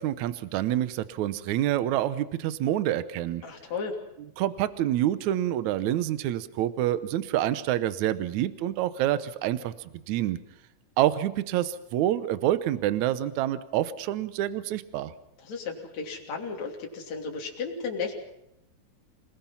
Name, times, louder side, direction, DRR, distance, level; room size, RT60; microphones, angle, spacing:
voice 1, 0.0-3.4 4.4-9.7 10.1-10.4 11.0-15.1, right 12 dB, 70° right, 13 dB, 2.2 m, -27 dB
voice 2, 3.4-4.0 15.4-18.1, left 5 dB, 60° left, 0 dB, 4.2 m, -34 dB
28.0 x 19.5 x 5.7 m, 0.81 s
omnidirectional pair, 3.6 m